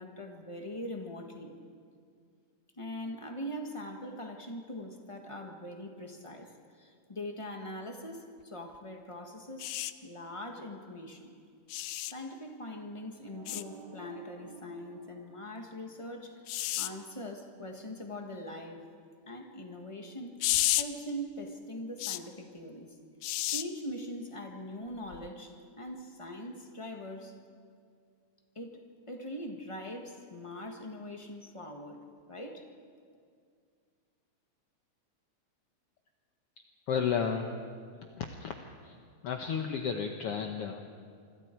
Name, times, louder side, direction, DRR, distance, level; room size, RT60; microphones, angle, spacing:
voice 1, 0.0-1.5 2.8-11.3 12.1-18.9 19.3-20.4 20.7-23.0 23.5-27.4 28.5-32.7, equal, 25° left, 3 dB, 0.6 m, -42 dB
sound 1, 9.6-9.9 11.7-12.1 13.5-13.6 16.5-16.9 20.4-20.8 22.0-22.2 23.2-23.6 25.1-25.3, left 15 dB, 85° left, 2.1 m, -31 dB
sound 2, 13.3-16.2, right 5 dB, 70° right, 4.4 m, -53 dB
voice 2, 36.9-37.5 38.2-38.6 38.8-39.0 39.2-40.8, left 7 dB, 65° left, 4 dB, 1.7 m, -32 dB
26.5 x 26.0 x 4.5 m, 2.2 s
omnidirectional pair, 3.4 m